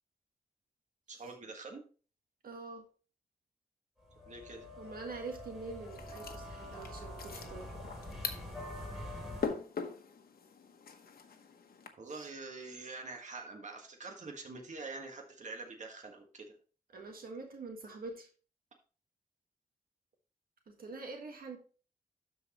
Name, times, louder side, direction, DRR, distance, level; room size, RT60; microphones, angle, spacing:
voice 1, 1.1-1.8 4.2-4.7 12.0-16.5, right 3 dB, 55° right, 2 dB, 1.5 m, -45 dB
voice 2, 2.4-2.8 4.8-7.8 12.2-12.3 16.9-18.3 20.7-21.6, right 3 dB, 75° right, 3 dB, 1.6 m, -45 dB
sound 1, 4.0-9.5, left 1 dB, ahead, 3.1 m, -45 dB
sound 2, 5.9-11.9, left 5 dB, 80° left, 1.1 m, -43 dB
12.5 x 4.6 x 3.0 m, 0.38 s
wide cardioid pair, 85°, 15 cm